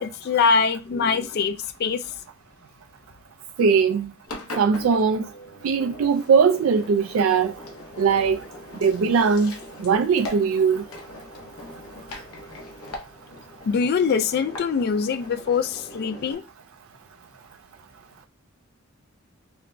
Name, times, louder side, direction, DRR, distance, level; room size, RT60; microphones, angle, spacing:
voice 1, 0.0-2.1 4.8-4.9 13.7-16.4, left 5 dB, 50° left, 0.3 m, -23 dB
voice 2, 3.6-4.1 4.6-5.3 5.6-7.6 8.0-8.4 8.8-9.5 9.8-10.8, right 5 dB, 65° right, 0.3 m, -20 dB
Engine, 4.3-16.3, left 1 dB, 85° left, 0.8 m, -41 dB
5.7 x 2.2 x 2.5 m
head